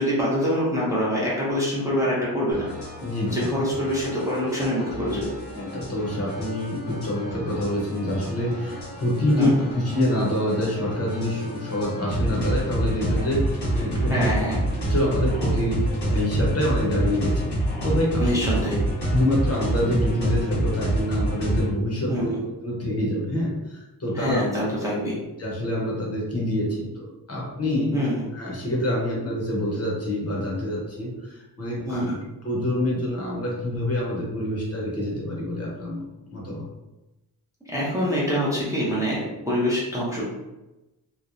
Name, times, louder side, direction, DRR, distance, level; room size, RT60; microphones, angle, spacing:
voice 1, 0.0-2.7 3.2-5.3 9.4-9.5 14.0-14.6 18.2-18.8 22.1-22.4 24.1-25.2 27.9-28.3 31.9-32.2 37.6-40.2, equal, 10° right, -8 dB, 0.6 m, -25 dB
sound 1, 2.5-21.7, right 1 dB, 85° left, 1.3 m, -28 dB
voice 2, 3.0-3.4 5.5-14.2 14.9-17.5 17.8-18.4 19.1-24.4 25.4-27.9 28.3-32.0 32.4-36.0 36.3-36.6, left 1 dB, 40° left, -4 dB, 0.8 m, -26 dB
3.0 x 2.1 x 2.5 m, 1.0 s
wide cardioid pair, 150°, 39 cm